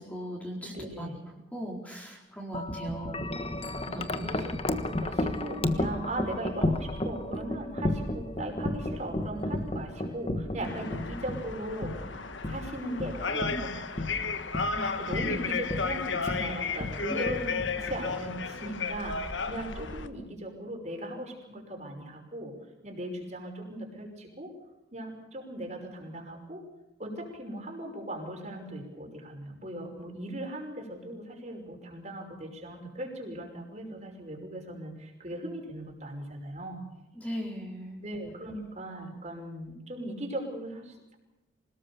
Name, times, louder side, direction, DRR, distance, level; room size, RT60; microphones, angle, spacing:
voice 1, 0.0-1.1 1.3-3.3 3.7-4.3 4.6-4.9 14.7-15.1 17.1-17.2 37.1-38.0, equal, 10° left, -1 dB, 4.3 m, -39 dB
voice 2, 0.7-1.2 4.1-14.1 15.0-22.6 22.8-24.5 24.9-26.7 27.0-36.8 38.0-41.2, right 1 dB, 35° right, 1 dB, 5.5 m, -38 dB
Wind chime, 2.5-18.7, left 1 dB, 30° left, 1.4 m, -33 dB
sound 1, 10.6-20.1, left 4 dB, 85° left, 1.5 m, -34 dB
26.5 x 19.0 x 7.0 m, 1.0 s
head